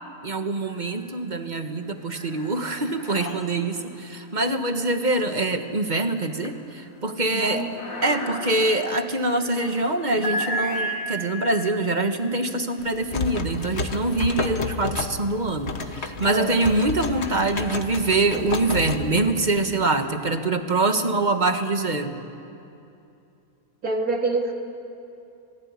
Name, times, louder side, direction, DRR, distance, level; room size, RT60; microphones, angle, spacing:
voice 1, 0.2-7.6 8.0-22.2, right 2 dB, 30° right, 7 dB, 1.6 m, -24 dB
sound 1, 0.6-1.3 1.6-14.8 15.5-19.9, equal, 65° left, 2.7 m, -37 dB
voice 2, 7.3-7.7 16.2-16.6 23.8-24.5, right 2 dB, 80° right, 2 dB, 2.9 m, -25 dB
sound 2, 12.8-19.6, left 4 dB, 50° left, 1.5 m, -31 dB
26.5 x 20.0 x 9.8 m, 2.7 s
omnidirectional pair, 1.5 m